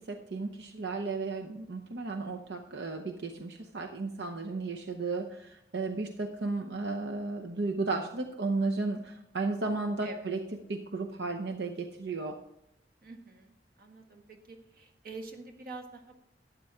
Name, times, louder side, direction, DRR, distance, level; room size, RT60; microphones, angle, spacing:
voice 1, 0.0-10.4 10.7-12.4, right 3 dB, 80° right, 4 dB, 0.8 m, -34 dB
voice 2, 13.0-16.1, right 3 dB, 55° right, 4 dB, 1.6 m, -46 dB
12.0 x 9.2 x 3.6 m, 0.76 s
head